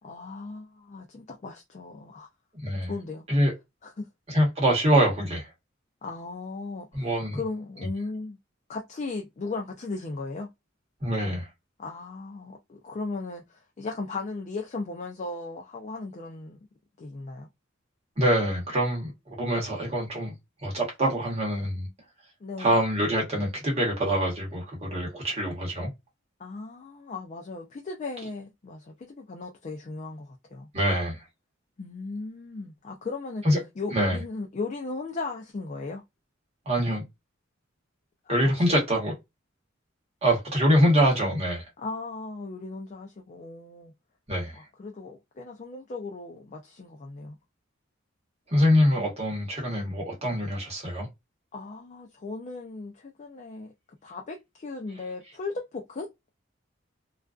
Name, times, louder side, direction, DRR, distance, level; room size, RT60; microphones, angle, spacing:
voice 1, 0.0-2.3 2.9-3.2 3.8-4.1 6.0-8.4 8.7-10.5 11.8-16.6 17.0-17.5 22.4-22.8 26.4-30.7 31.8-33.5 33.8-36.0 38.3-38.8 41.8-43.9 44.5-47.4 48.7-49.0 51.5-53.7 54.0-56.1, left 3 dB, 35° left, 0.4 m, -37 dB
voice 2, 2.6-2.9 3.3-3.5 4.3-5.5 6.9-7.4 11.0-11.5 18.2-20.3 20.6-21.9 22.6-25.9 30.7-31.2 33.4-33.6 33.9-34.2 36.7-37.0 38.3-39.1 40.2-41.6 44.3-44.6 48.5-51.1, equal, 35° right, 1.0 m, -24 dB
2.4 x 2.2 x 2.3 m
head